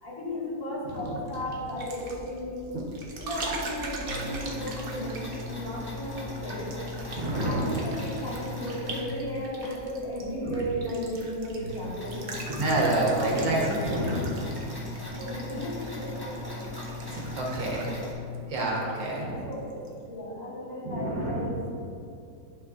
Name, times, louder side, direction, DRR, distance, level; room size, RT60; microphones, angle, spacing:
voice 1, 0.0-2.6 3.2-6.7 7.4-12.2 13.0-13.5 15.2-16.6 19.1-19.7 20.1-21.7, equal, 45° left, -7 dB, 2.3 m, -35 dB
sound 1, 0.9-19.2 19.5-19.9, right 2 dB, 60° right, 0.6 m, -42 dB
sound 2, 4.1-9.7 10.3-10.4 10.8-10.9 11.2-18.1, left 2 dB, 15° left, 1.2 m, -38 dB
voice 2, 7.2-7.8 10.4-10.6 12.5-14.4 15.9-16.0 17.1-17.9 18.5-19.4 20.8-21.5, right 1 dB, 85° right, -3 dB, 1.8 m, -28 dB
11.0 x 5.7 x 2.5 m, 2.5 s
omnidirectional pair, 2.0 m